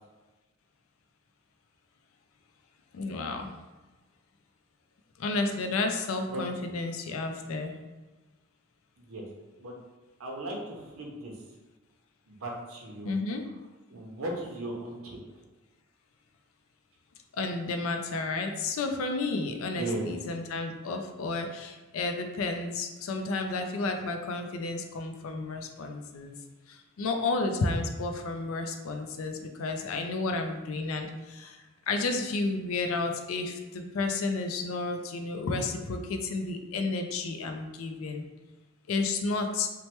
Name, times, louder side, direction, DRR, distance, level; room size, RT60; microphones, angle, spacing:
voice 1, 2.9-3.5 5.2-7.7 13.0-13.4 17.4-26.3 27.0-31.6 31.9-38.2 38.9-39.7, left 3 dB, 70° left, 5 dB, 0.4 m, -31 dB
voice 2, 10.2-11.3 12.3-13.1 13.9-15.2 19.8-20.0, right 1 dB, 70° right, -1 dB, 0.6 m, -36 dB
3.1 x 2.1 x 2.9 m, 1.2 s
head